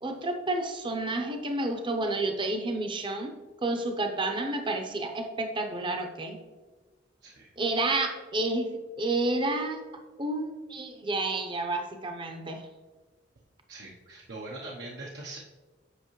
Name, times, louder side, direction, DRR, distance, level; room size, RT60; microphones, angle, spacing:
voice 1, 0.0-3.3 3.6-6.4 7.6-8.7 9.0-9.8 10.2-12.6, right 2 dB, 30° right, 5 dB, 0.7 m, -30 dB
voice 2, 7.2-7.5 13.7-15.4, right 2 dB, 75° right, -3 dB, 0.8 m, -42 dB
8.0 x 5.7 x 3.1 m, 1.3 s
head